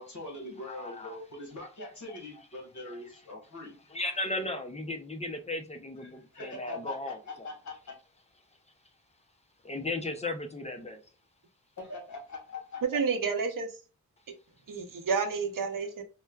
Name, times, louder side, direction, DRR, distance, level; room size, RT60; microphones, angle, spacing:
voice 1, 0.0-3.8 6.0-7.9 11.8-12.8, left 2 dB, 55° left, 1.3 m, -42 dB
voice 2, 0.7-1.2 1.8-2.2 3.9-7.5 9.6-11.0, left 2 dB, 20° left, 0.4 m, -36 dB
voice 3, 12.9-13.7 14.7-16.0, right 5 dB, 65° right, 0.7 m, -30 dB
4.5 x 2.2 x 2.2 m
wide cardioid pair, 135°, 34 cm